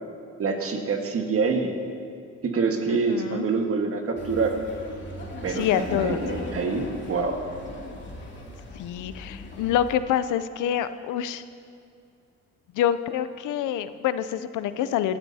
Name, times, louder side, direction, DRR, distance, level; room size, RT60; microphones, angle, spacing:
voice 1, 0.4-1.7 2.4-4.6 5.4-7.4, right 4 dB, 50° right, 3 dB, 1.6 m, -26 dB
voice 2, 2.9-3.5 5.5-6.2 8.7-11.4 12.7-15.2, left 10 dB, 80° left, 13 dB, 0.6 m, -26 dB
Laughter, 4.2-9.9, left 2 dB, 40° left, 2.5 m, -37 dB
19.0 x 12.0 x 2.8 m, 2.4 s
cardioid pair, 90°, 30 cm